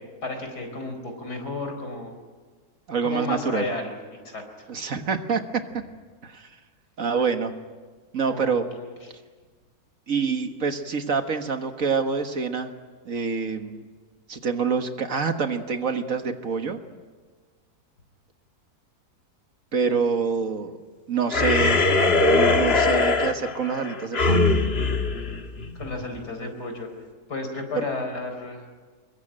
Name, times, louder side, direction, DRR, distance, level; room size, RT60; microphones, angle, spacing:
voice 1, 0.2-2.1 3.0-3.9 4.2-4.4 8.3-8.9 19.8-20.0 25.7-26.9 27.3-28.6, left 2 dB, 75° left, 5 dB, 4.9 m, -32 dB
voice 2, 2.9-3.7 4.7-5.6 6.2-6.5 7.0-7.5 8.1-8.6 10.1-12.7 13.0-13.8 14.3-16.8 19.7-20.8 21.1-21.8 22.3-24.6 27.8-27.9, right 5 dB, 55° right, 7 dB, 1.8 m, -26 dB
sound 1, 21.3-26.0, left 3 dB, 40° left, 1.6 m, -21 dB
27.0 x 22.5 x 8.9 m, 1.4 s
omnidirectional pair, 1.7 m